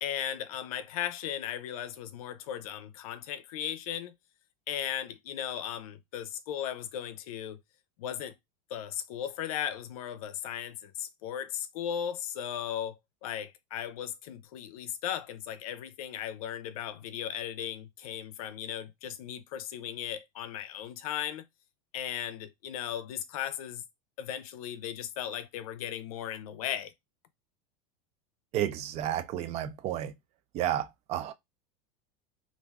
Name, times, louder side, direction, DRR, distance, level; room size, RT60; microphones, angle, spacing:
voice 1, 0.0-4.1 4.7-7.6 8.0-8.3 8.7-21.4 21.9-23.8 24.2-26.9, left 10 dB, 85° left, 0.5 m, -36 dB
voice 2, 28.5-30.1 30.5-31.3, right 11 dB, 35° right, 0.4 m, -31 dB
2.5 x 2.2 x 3.3 m
supercardioid pair, 145°, 18 cm